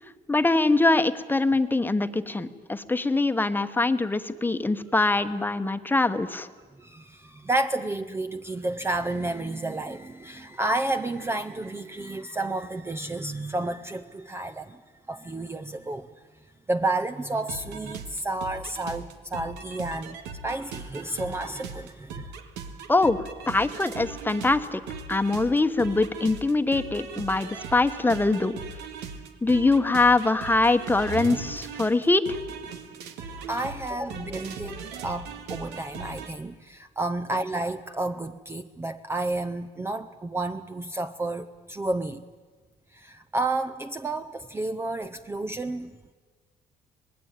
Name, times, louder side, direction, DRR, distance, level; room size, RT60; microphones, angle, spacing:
voice 1, 0.3-6.5 22.9-24.8 25.1-28.6 29.4-32.4, left 2 dB, 10° left, 10 dB, 1.2 m, -23 dB
voice 2, 6.8-14.8 15.1-16.1 16.7-20.2 20.4-22.3 33.5-42.2 42.9-45.9, right 2 dB, 15° right, 9 dB, 0.7 m, -31 dB
sound 1, 17.5-36.3, right 5 dB, 90° right, 2.0 m, -39 dB
25.5 x 19.5 x 9.1 m, 1.5 s
cardioid pair, 110°, 17 cm